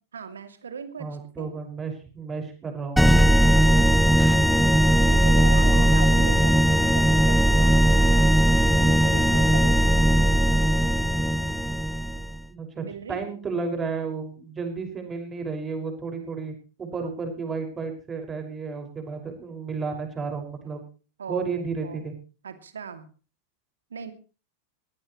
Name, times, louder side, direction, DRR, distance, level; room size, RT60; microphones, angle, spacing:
voice 1, 0.1-1.1 1.4-1.5 3.5-3.9 5.1-8.3 8.8-9.8 12.2-12.3 12.7-13.3 17.0-17.1 21.2-21.5 21.8-22.1 22.4-23.1 23.9-24.1, right 6 dB, 70° right, 9 dB, 2.6 m, -38 dB
voice 2, 1.0-3.2 5.6-6.0 12.5-20.8 21.3-22.1, right 4 dB, 20° right, 5 dB, 5.7 m, -32 dB
sound 1, 3.0-12.4, right 1 dB, ahead, 0.9 m, -19 dB
21.0 x 17.5 x 3.1 m, 0.36 s
figure-of-eight pair, 90°, 0 cm